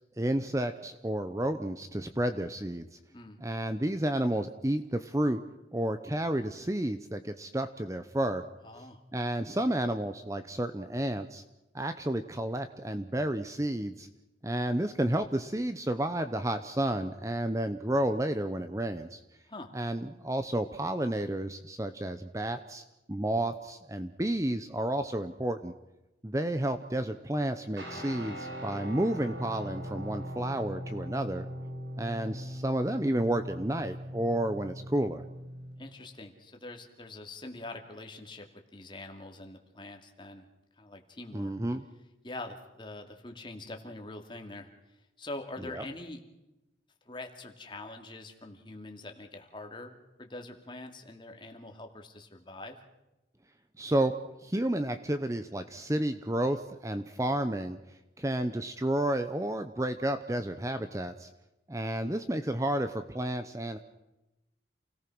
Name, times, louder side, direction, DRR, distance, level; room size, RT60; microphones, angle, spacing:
voice 1, 0.2-3.0 3.4-5.4 5.7-8.4 9.1-11.4 11.7-14.1 14.4-19.2 19.7-22.8 23.1-25.7 26.2-31.5 32.0-35.2 41.3-41.8 45.7-45.8 53.8-54.1 54.4-57.8 58.2-61.3 61.7-63.8, right 1 dB, 15° right, 9 dB, 0.8 m, -31 dB
voice 2, 8.6-9.0 19.5-19.7 35.8-38.5 38.7-40.5 40.8-41.5 42.2-46.2 47.0-52.8, left 2 dB, 25° left, 3 dB, 2.4 m, -44 dB
Guitar, 27.8-35.9, equal, 70° right, 5.9 m, -40 dB
28.5 x 18.0 x 6.2 m, 0.97 s
head